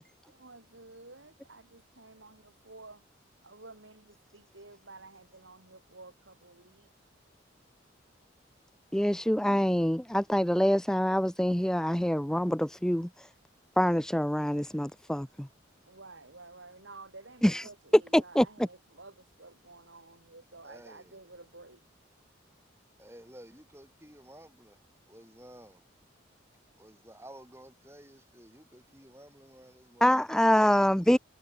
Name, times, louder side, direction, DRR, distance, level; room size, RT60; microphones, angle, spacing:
voice 1, 0.0-3.0 3.4-6.9 15.9-21.8, right 3 dB, 75° right, 4.8 m, -52 dB
voice 2, 8.9-13.3 13.8-15.5 17.4-17.6 18.1-18.5 30.0-31.2, equal, 5° left, 0.4 m, -25 dB
voice 3, 20.6-21.2 23.0-25.8 26.8-30.4, right 1 dB, 15° right, 6.5 m, -53 dB
head